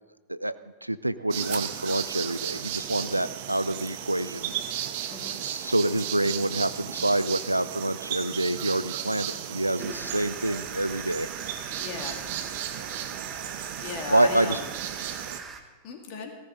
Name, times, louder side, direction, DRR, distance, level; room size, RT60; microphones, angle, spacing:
voice 1, 0.8-4.5 5.4-11.3 11.6-11.8 14.1-14.6, right 1 dB, 85° right, 15 dB, 0.5 m, -27 dB
sound 1, 1.3-15.4, right 11 dB, 50° right, 1.0 m, -35 dB
voice 2, 5.1-5.4 11.8-12.2 13.8-14.7 15.8-16.3, left 5 dB, 45° left, 2 dB, 2.7 m, -36 dB
sound 2, 9.8-15.6, right 5 dB, 25° right, 1.5 m, -42 dB
17.5 x 14.0 x 3.9 m, 1.3 s
figure-of-eight pair, 90°, 0 cm